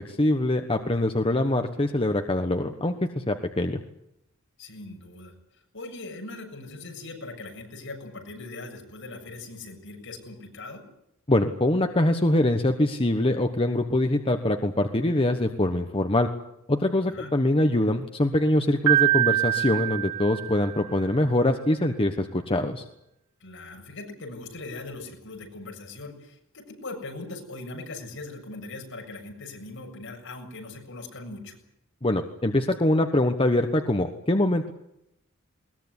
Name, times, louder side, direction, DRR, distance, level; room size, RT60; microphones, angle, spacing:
voice 1, 0.0-3.8 11.3-16.3 16.7-22.8 32.0-34.7, left 1 dB, 25° left, 5 dB, 1.3 m, -24 dB
voice 2, 4.6-5.3 5.7-10.8 17.0-17.3 23.4-31.6, left 2 dB, 65° left, 2 dB, 7.3 m, -40 dB
Piano, 18.9-21.0, right 15 dB, 85° right, 5.4 m, -24 dB
21.0 x 20.5 x 9.7 m, 0.81 s
head